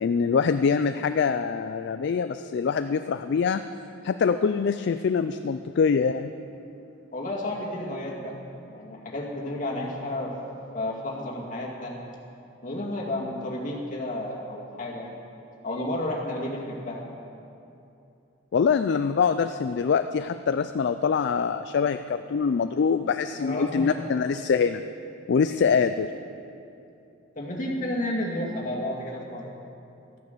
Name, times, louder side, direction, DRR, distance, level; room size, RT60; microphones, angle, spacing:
voice 1, 0.0-3.6 4.0-6.3 18.5-24.8 25.3-26.1, left 6 dB, 60° left, 10 dB, 0.3 m, -24 dB
voice 2, 7.1-8.4 8.7-10.4 10.7-12.0 12.6-15.1 15.6-17.0 19.0-19.1 23.4-24.0 27.4-29.5, left 1 dB, 40° left, -2 dB, 2.0 m, -31 dB
13.5 x 9.5 x 6.7 m, 2.7 s
head